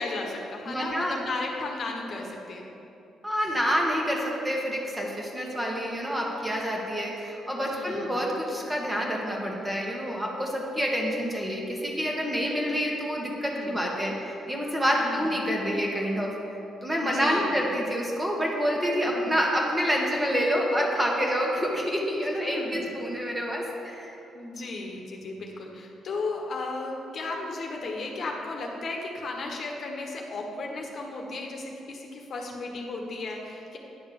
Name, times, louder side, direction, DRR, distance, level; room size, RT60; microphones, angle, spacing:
voice 1, 0.0-2.7 7.7-8.2 13.5-13.9 14.9-15.3 17.0-17.6 19.1-19.4 22.4-22.9 24.3-33.8, left 3 dB, 55° left, 1 dB, 1.1 m, -35 dB
voice 2, 0.7-1.2 3.2-16.3 16.8-24.1, equal, 15° right, -1 dB, 1.5 m, -27 dB
9.8 x 3.5 x 6.9 m, 2.9 s
cardioid pair, 80°, 0 cm